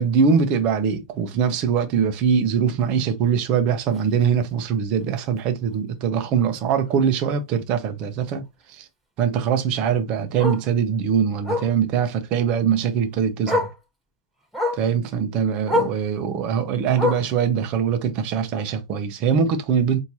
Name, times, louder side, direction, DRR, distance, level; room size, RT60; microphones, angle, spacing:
voice 1, 0.0-8.4 9.2-13.6 14.8-20.0, right 7 dB, 40° right, 1.0 m, -22 dB
Bark, 3.9-4.1 4.5-4.6 5.0-5.1 5.4-5.5 6.9-7.0 9.5-9.6 10.4-10.7 11.4-11.7 12.9-13.0 13.4-13.8 14.5-14.9 15.6-16.0 16.9-17.4 18.4-18.5, left 2 dB, 5° right, 1.7 m, -24 dB
4.5 x 2.9 x 2.8 m
hypercardioid pair, 130°, 3 cm